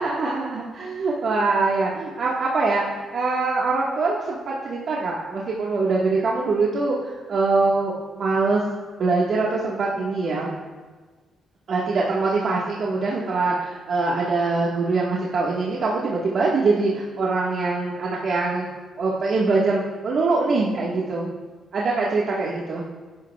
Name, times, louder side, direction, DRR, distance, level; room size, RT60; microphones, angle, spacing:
voice 1, 0.0-2.8 3.1-8.6 9.0-10.5 11.7-18.7 19.0-21.3 21.7-22.9, right 3 dB, 55° right, -5 dB, 1.7 m, -23 dB
21.0 x 11.5 x 2.4 m, 1.4 s
cardioid pair, 120°, 0 cm